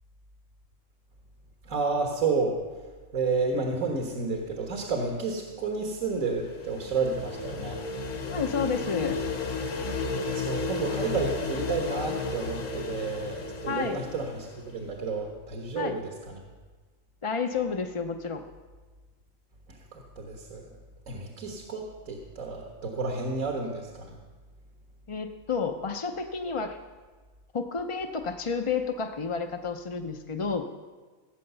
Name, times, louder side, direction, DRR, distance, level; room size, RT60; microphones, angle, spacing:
voice 1, 1.6-2.6 3.1-7.8 10.3-16.4 19.7-20.7 21.1-24.2, right 4 dB, 85° right, 1 dB, 1.8 m, -31 dB
sound 1, 6.0-14.8, left 3 dB, 75° left, 1.6 m, -33 dB
voice 2, 8.3-9.2 13.7-14.0 15.7-16.0 17.2-18.5 25.1-26.8 27.5-30.6, left 5 dB, 35° left, 5 dB, 0.5 m, -30 dB
17.0 x 8.8 x 6.8 m, 1.4 s
omnidirectional pair, 1.4 m